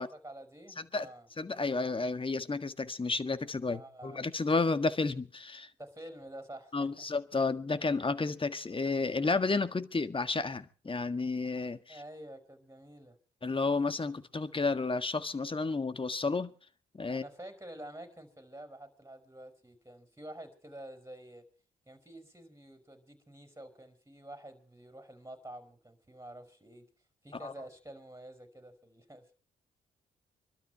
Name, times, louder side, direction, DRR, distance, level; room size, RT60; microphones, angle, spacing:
voice 1, 0.0-1.3 3.7-4.3 5.8-7.1 11.9-13.2 17.1-21.5 21.9-26.9 27.2-29.3, right 1 dB, 15° right, 5.2 m, -49 dB
voice 2, 0.8-1.1 1.4-5.7 6.7-12.0 13.4-16.5 16.9-17.2 27.4-27.5, left 3 dB, 25° left, 1.6 m, -31 dB
24.5 x 12.5 x 4.6 m
hypercardioid pair, 50°, 19 cm